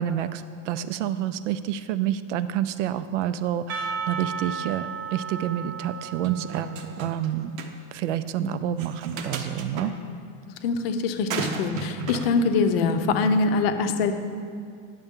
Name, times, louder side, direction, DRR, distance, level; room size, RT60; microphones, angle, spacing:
voice 1, 0.0-6.7 7.0-7.5 7.9-9.9, right 10 dB, 65° right, 13 dB, 0.5 m, -28 dB
Percussion, 3.7-7.6, right 6 dB, 35° right, 0.7 m, -34 dB
sound 1, 6.2-7.3 7.6-7.7 8.8-9.9 11.3-12.3, right 5 dB, 85° right, 0.9 m, -33 dB
voice 2, 8.4-8.9 9.8-10.2 10.6-14.1, left 4 dB, 50° left, 7 dB, 0.6 m, -24 dB
10.0 x 6.8 x 3.6 m, 2.3 s
supercardioid pair, 175°, 39 cm